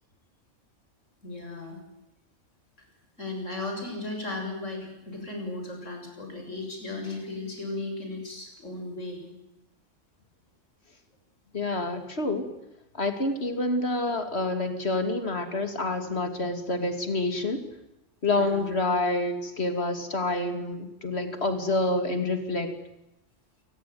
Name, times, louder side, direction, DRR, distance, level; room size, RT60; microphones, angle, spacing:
voice 1, 1.2-1.8 3.2-9.2 18.4-18.7, left 2 dB, 80° left, 3 dB, 7.3 m, -36 dB
voice 2, 11.5-12.5 12.9-17.6 18.2-22.7, left 2 dB, 55° left, 7 dB, 2.9 m, -28 dB
28.0 x 19.5 x 9.5 m, 0.91 s
omnidirectional pair, 1.3 m